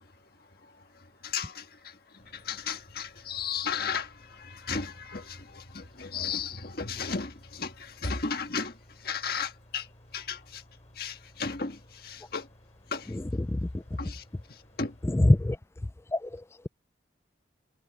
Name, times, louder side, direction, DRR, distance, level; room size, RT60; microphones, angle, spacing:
voice 1, 0.0-10.6 10.9-12.5 12.9-13.2 14.0-15.0, left 5 dB, 55° left, 1.6 m, -35 dB
sound 1, 2.2-15.2, equal, 40° left, 7.2 m, -57 dB
voice 2, 13.5-13.8 15.1-15.6 16.1-16.4, left 1 dB, 15° left, 0.4 m, -23 dB
head